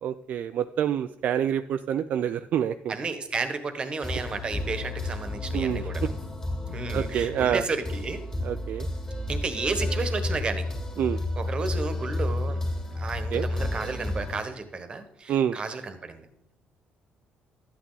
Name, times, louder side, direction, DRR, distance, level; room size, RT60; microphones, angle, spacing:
voice 1, 0.0-2.9 5.5-5.9 6.9-7.6 8.4-8.9 11.0-11.2 13.3-13.5 15.3-15.6, right 9 dB, 55° right, 10 dB, 0.4 m, -27 dB
voice 2, 2.9-6.1 6.7-8.2 9.3-10.7 11.4-12.6 12.9-16.3, right 4 dB, 30° right, 9 dB, 1.3 m, -32 dB
sound 1, 4.0-14.4, left 2 dB, 15° left, 2.3 m, -31 dB
12.5 x 8.7 x 4.0 m, 0.82 s
cardioid pair, 145°, 4 cm